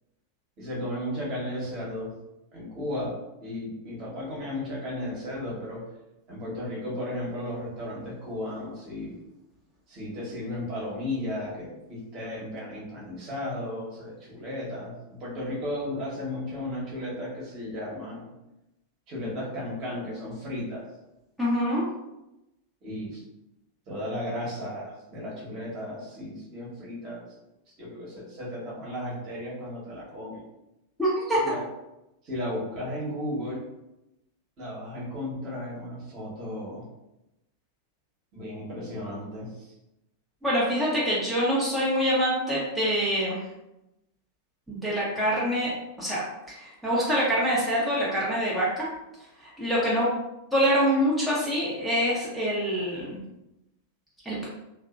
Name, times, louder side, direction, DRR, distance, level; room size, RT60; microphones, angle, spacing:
voice 1, 0.6-2.1 2.5-5.8 6.3-9.2 9.9-18.3 19.1-20.8 22.8-23.2 23.9-27.3 27.8-30.4 31.4-31.6 32.2-33.6 34.6-36.8 38.3-39.7, left 1 dB, 40° right, -5 dB, 1.1 m, -34 dB
voice 2, 21.4-21.9 31.0-31.5 40.4-43.4 44.7-48.9 49.4-50.1 50.5-53.2 54.2-54.4, equal, ahead, -9 dB, 0.8 m, -25 dB
2.8 x 2.4 x 2.4 m, 0.93 s
figure-of-eight pair, 90°, 0 cm